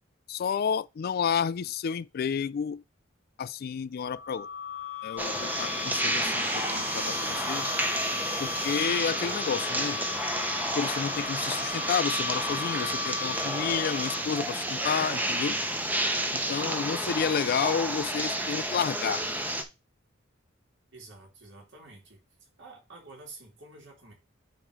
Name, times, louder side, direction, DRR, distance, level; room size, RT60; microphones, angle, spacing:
voice 1, 0.3-2.8 3.4-4.5 5.0-7.7 8.4-10.0 10.7-15.6 16.3-19.2, left 7 dB, 50° left, 0.3 m, -30 dB
sound 1, 4.0-14.4, left 6 dB, 75° left, 1.1 m, -37 dB
sound 2, 5.2-19.6, right 1 dB, 10° right, 0.8 m, -30 dB
voice 2, 20.9-22.2 22.6-24.1, right 3 dB, 60° right, 3.0 m, -49 dB
8.7 x 3.2 x 4.9 m
head